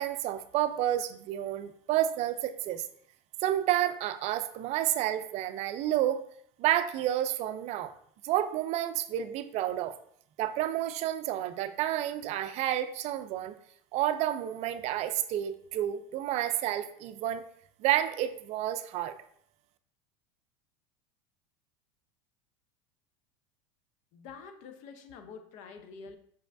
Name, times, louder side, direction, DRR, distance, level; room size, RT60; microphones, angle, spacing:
voice 1, 0.0-2.8 3.4-6.2 6.6-7.9 8.2-10.0 10.4-13.5 13.9-17.4 17.8-19.2, right 12 dB, 50° right, 11 dB, 0.4 m, -30 dB
voice 2, 24.1-26.2, left 5 dB, 60° left, 8 dB, 0.6 m, -47 dB
5.3 x 3.1 x 2.5 m, 0.65 s
supercardioid pair, 105°, 15 cm